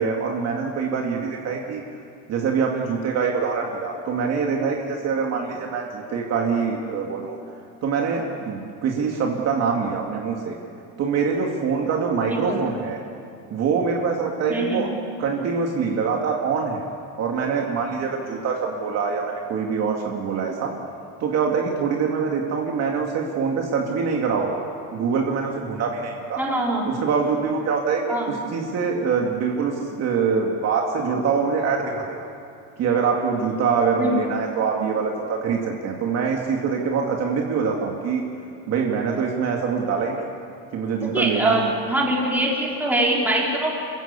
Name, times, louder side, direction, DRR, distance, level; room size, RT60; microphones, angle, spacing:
voice 1, 0.0-1.8 2.3-7.4 7.8-10.6 11.0-13.0 13.5-14.9 15.2-16.8 17.2-20.7 21.2-24.6 24.9-26.4 26.8-32.3 32.8-38.2 38.7-40.3 40.7-41.7, right 5 dB, 45° right, 0 dB, 2.3 m, -24 dB
voice 2, 12.3-12.6 14.5-14.9 26.4-26.9 28.1-28.3 34.0-34.3 41.0-43.8, right 1 dB, 5° right, -3 dB, 3.9 m, -23 dB
27.0 x 15.5 x 8.3 m, 2.6 s
cardioid pair, 145°, 37 cm